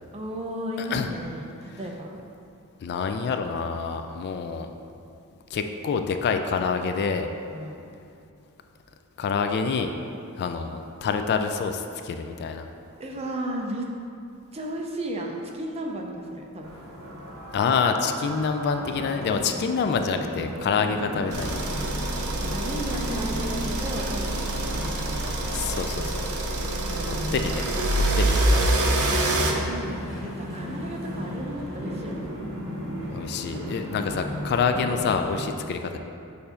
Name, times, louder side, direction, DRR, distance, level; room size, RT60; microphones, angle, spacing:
voice 1, 0.1-2.2 7.5-7.9 13.0-13.9 14.5-16.8 19.4-19.6 20.7-21.0 22.5-24.5 24.7-25.2 26.7-27.6 29.6-32.3 35.5-35.8, right 1 dB, 30° right, 0 dB, 0.6 m, -35 dB
voice 2, 0.8-1.1 2.8-4.7 5.5-7.3 9.2-9.9 10.4-12.7 17.5-21.6 25.0-25.1 25.4-26.2 27.1-27.6 27.9-28.6 33.1-36.0, left 5 dB, 50° left, 6 dB, 0.3 m, -27 dB
sound 1, 16.6-35.4, equal, 60° right, 1.0 m, -36 dB
sound 2, 21.3-29.5, right 1 dB, 75° right, 0.7 m, -26 dB
sound 3, 27.2-32.2, equal, 15° left, 1.2 m, -42 dB
6.7 x 2.7 x 5.6 m, 2.6 s
head